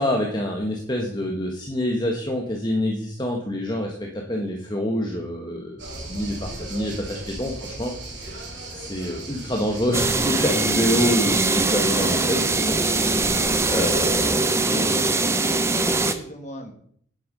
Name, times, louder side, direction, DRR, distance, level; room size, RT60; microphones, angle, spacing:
voice 1, 0.0-7.9 8.7-12.8 13.0-14.8, left 1 dB, 25° left, 1 dB, 1.3 m, -27 dB
sound 1, 5.8-14.3, right 1 dB, 75° right, 3.9 m, -37 dB
sound 2, 9.9-16.1, right 3 dB, 15° right, 0.7 m, -22 dB
voice 2, 14.4-14.9 15.5-16.7, equal, 40° left, 4 dB, 1.8 m, -38 dB
9.2 x 9.1 x 5.4 m, 0.62 s
head